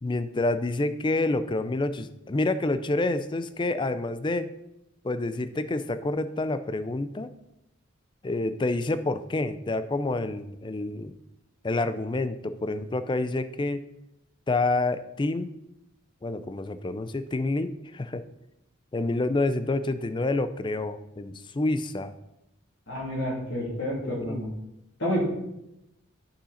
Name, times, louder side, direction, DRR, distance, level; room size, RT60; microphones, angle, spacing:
voice 1, 0.0-4.5 5.0-7.3 8.2-11.1 11.6-13.8 14.5-15.5 16.2-18.2 18.9-22.1 23.7-23.8 24.0-24.5, left 2 dB, 25° left, 12 dB, 0.4 m, -28 dB
voice 2, 22.9-24.5 25.0-25.2, equal, 60° left, -3 dB, 2.7 m, -29 dB
8.8 x 5.7 x 4.1 m, 0.86 s
head